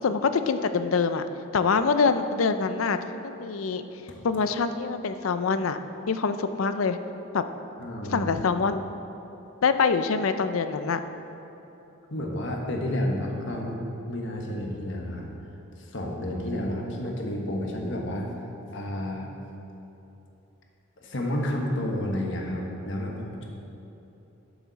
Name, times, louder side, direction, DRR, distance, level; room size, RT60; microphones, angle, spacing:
voice 1, 0.0-1.2 1.5-3.8 4.2-5.8 6.1-7.0 7.3-7.4 8.1-8.8 9.6-11.0, left 5 dB, 75° left, 10 dB, 0.5 m, -25 dB
voice 2, 7.8-8.3 12.1-13.8 14.1-15.3 15.8-18.3 18.7-19.3 21.0-23.5, left 1 dB, 60° left, 0 dB, 1.3 m, -30 dB
12.0 x 7.1 x 4.1 m, 3.0 s
head